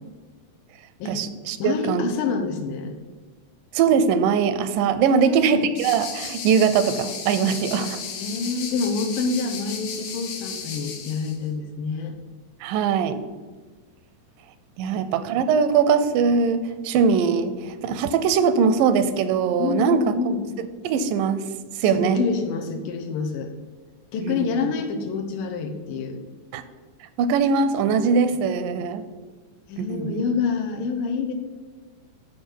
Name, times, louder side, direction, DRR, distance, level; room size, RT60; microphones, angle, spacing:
voice 1, 1.1-2.0 3.7-8.0 12.6-13.2 14.8-20.1 20.6-21.5 21.8-22.2 24.2-24.5 26.5-26.6 27.2-29.0 29.8-30.2, right 6 dB, 85° right, 11 dB, 2.3 m, -21 dB
voice 2, 1.6-2.9 5.1-5.7 7.4-7.6 8.1-12.2 14.8-15.1 19.6-20.4 21.8-23.5 24.1-26.2 29.7-31.3, left 5 dB, 80° left, 5 dB, 2.5 m, -27 dB
sound 1, 5.8-11.4, left 6 dB, 65° left, 1.5 m, -34 dB
12.5 x 5.0 x 4.5 m, 1.4 s
omnidirectional pair, 3.8 m